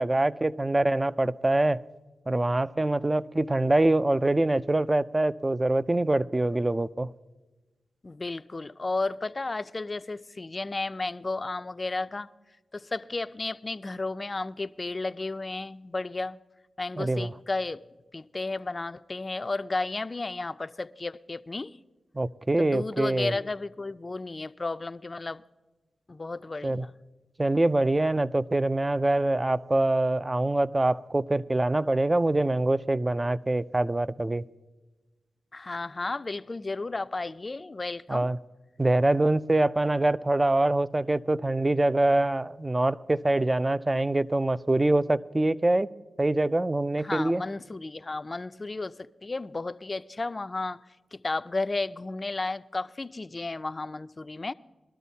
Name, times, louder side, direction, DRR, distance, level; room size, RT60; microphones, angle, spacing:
voice 1, 0.0-1.8 2.3-7.1 17.0-17.3 22.1-23.3 26.6-26.8 27.4-34.4 38.1-38.4 38.8-45.9 46.2-47.4, right 2 dB, 25° right, 0.4 m, -24 dB
voice 2, 8.0-12.3 12.7-16.4 16.8-17.8 18.1-21.8 22.6-25.4 26.1-26.9 35.5-38.3 47.0-50.8 51.1-54.5, left 3 dB, 40° left, 0.4 m, -33 dB
22.0 x 12.5 x 2.8 m
supercardioid pair, 40°, 0 cm